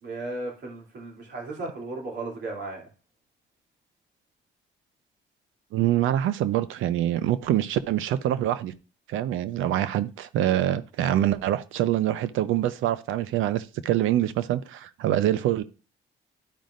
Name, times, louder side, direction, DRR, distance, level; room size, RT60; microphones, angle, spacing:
voice 1, 0.0-2.9, right 2 dB, 60° right, 2.9 m, -35 dB
voice 2, 5.7-8.7 9.1-15.6, right 12 dB, 85° right, 0.6 m, -25 dB
12.0 x 5.1 x 2.5 m
cardioid pair, 90°, 20 cm